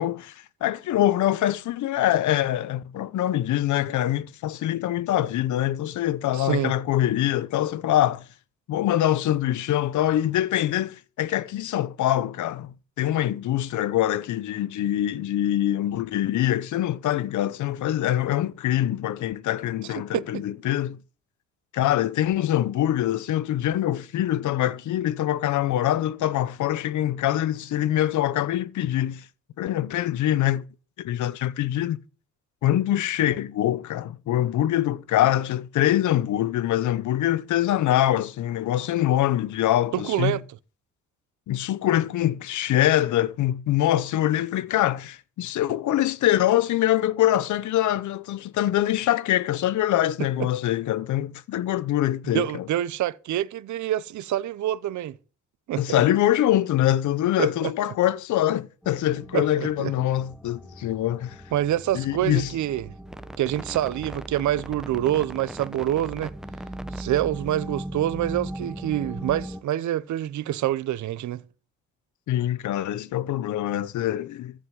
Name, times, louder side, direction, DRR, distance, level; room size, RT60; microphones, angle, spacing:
voice 1, 0.0-8.2 8.7-21.0 21.7-29.2 29.6-30.6 31.0-32.0 32.6-40.4 41.5-52.7 55.8-61.4 61.9-62.5 72.3-74.5, left 12 dB, 75° left, 0.9 m, -24 dB
voice 2, 6.3-6.7 20.1-20.4 39.9-40.4 50.4-50.5 52.3-55.2 55.7-56.0 57.4-57.7 59.3-59.4 59.8-59.9 61.5-62.9 63.4-66.3 66.9-71.4, right 12 dB, 70° right, 0.9 m, -26 dB
sound 1, 58.8-69.6, right 1 dB, ahead, 0.8 m, -38 dB
14.5 x 5.2 x 9.1 m
cardioid pair, 90°, 30 cm